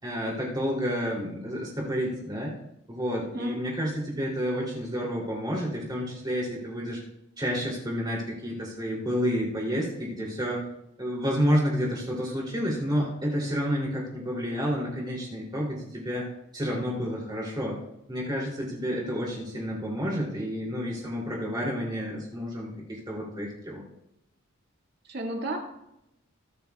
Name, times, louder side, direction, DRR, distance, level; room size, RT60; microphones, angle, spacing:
voice 1, 0.0-2.5 2.9-7.0 7.4-10.6 11.0-16.2 16.5-17.8 18.1-23.8, equal, 20° right, -4 dB, 3.1 m, -30 dB
voice 2, 25.0-25.6, right 1 dB, 50° right, 0 dB, 2.1 m, -32 dB
25.5 x 9.3 x 2.4 m, 0.85 s
head